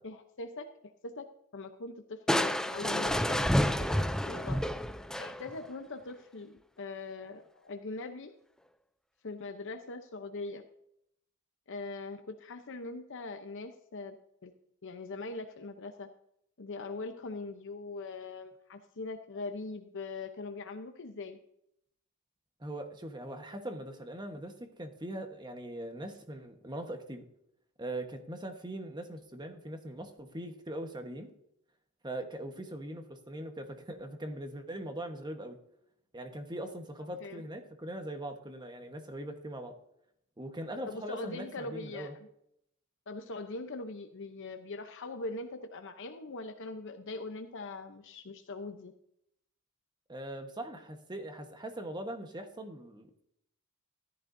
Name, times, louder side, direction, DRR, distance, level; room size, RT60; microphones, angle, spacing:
voice 1, 0.0-0.7 1.0-4.6 5.2-8.3 9.2-10.6 11.7-14.2 14.4-14.5 14.8-16.1 16.6-21.4 37.2-37.4 40.9-42.1 43.1-48.9, left 3 dB, 55° left, 6 dB, 0.7 m, -41 dB
Crushing, 2.3-5.7, equal, 5° left, 0.4 m, -29 dB
voice 2, 22.6-27.2 27.8-31.3 32.0-35.6 36.1-39.8 40.4-42.1 50.1-53.2, right 1 dB, 20° right, 6 dB, 1.2 m, -41 dB
14.0 x 11.0 x 2.7 m, 0.74 s
head